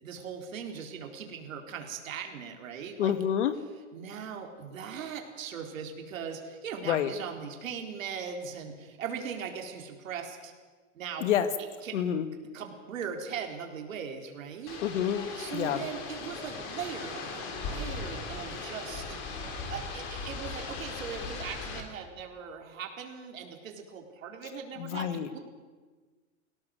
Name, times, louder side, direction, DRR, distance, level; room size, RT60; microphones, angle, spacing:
voice 1, 0.0-3.1 3.9-10.5 10.9-11.3 11.8-12.0 12.5-14.8 15.4-19.4 19.7-25.4, right 7 dB, 85° right, 3 dB, 4.2 m, -39 dB
voice 2, 3.0-3.5 6.9-7.1 11.2-11.5 11.9-12.3 14.8-15.9 24.8-25.3, left 9 dB, 65° left, 11 dB, 2.0 m, -28 dB
sound 1, 14.7-21.8, left 4 dB, 30° left, 3.2 m, -38 dB
23.5 x 17.5 x 7.8 m, 1.4 s
supercardioid pair, 170°, 39 cm